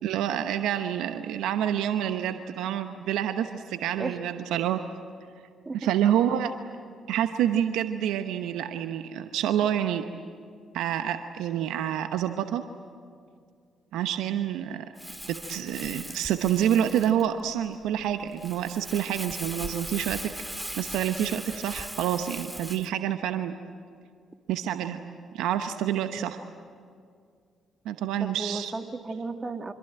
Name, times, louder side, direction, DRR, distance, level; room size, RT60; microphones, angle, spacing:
voice 1, 0.0-4.8 5.8-6.5 7.1-10.0 10.7-12.6 13.9-14.8 15.3-20.2 20.8-23.5 24.5-25.0 25.3-26.4 27.8-28.7, right 10 dB, 75° right, 8 dB, 0.9 m, -27 dB
Crumpling crinkling, 15.0-22.9, equal, 5° right, 2.2 m, -39 dB
voice 2, 28.2-29.7, right 3 dB, 30° right, 6 dB, 2.3 m, -34 dB
25.5 x 25.5 x 9.0 m, 2.2 s
hypercardioid pair, 50°, 0 cm